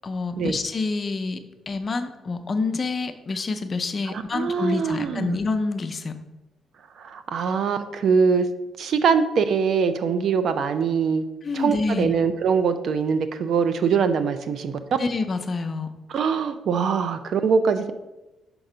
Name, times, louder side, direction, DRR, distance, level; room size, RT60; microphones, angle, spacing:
voice 1, 0.0-6.1 11.4-12.2 15.0-15.9, left 3 dB, 40° left, 8 dB, 0.6 m, -27 dB
voice 2, 4.1-5.4 7.0-8.5 8.8-11.2 11.5-14.7 16.1-17.9, right 6 dB, 65° right, 10 dB, 0.5 m, -23 dB
5.8 x 3.9 x 5.5 m, 1.0 s
cardioid pair, 90°, 0 cm